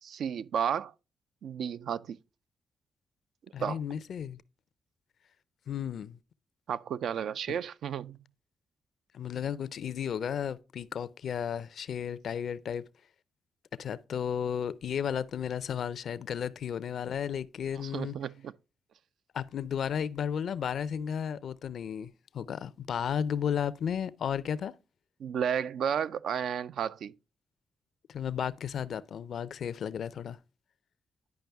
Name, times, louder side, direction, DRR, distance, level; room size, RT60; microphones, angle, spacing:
voice 1, 0.0-0.9 1.4-2.2 3.6-3.8 6.7-8.2 17.7-18.5 25.2-27.2, right 8 dB, 75° right, 0.3 m, -32 dB
voice 2, 3.5-4.4 5.7-6.2 7.5-7.6 9.1-12.8 13.7-18.2 19.3-24.7 28.1-30.4, left 8 dB, 70° left, 0.4 m, -34 dB
10.5 x 5.3 x 3.4 m
supercardioid pair, 55°, 0 cm